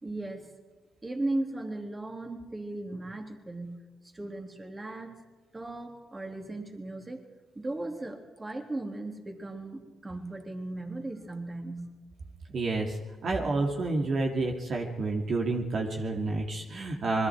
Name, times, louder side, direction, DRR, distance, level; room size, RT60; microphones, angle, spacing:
voice 1, 0.0-0.5 1.0-3.8 4.1-5.2 5.5-7.2 7.6-11.9, right 2 dB, 25° right, 3 dB, 3.6 m, -37 dB
voice 2, 12.5-17.3, right 3 dB, 55° right, 1 dB, 2.9 m, -29 dB
26.5 x 21.5 x 4.8 m, 1.3 s
supercardioid pair, 60°, 0 cm